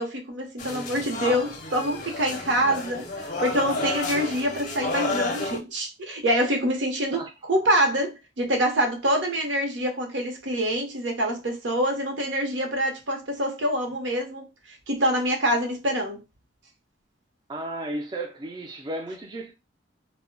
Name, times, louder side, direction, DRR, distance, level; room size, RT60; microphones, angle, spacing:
voice 1, 0.0-3.1 3.4-16.2, equal, 80° right, 0.8 m, -26 dB
sound 1, 0.6-5.6, left 3 dB, 45° left, 0.5 m, -31 dB
voice 2, 17.5-19.5, right 1 dB, 25° right, 0.3 m, -34 dB
2.1 x 2.0 x 3.7 m
head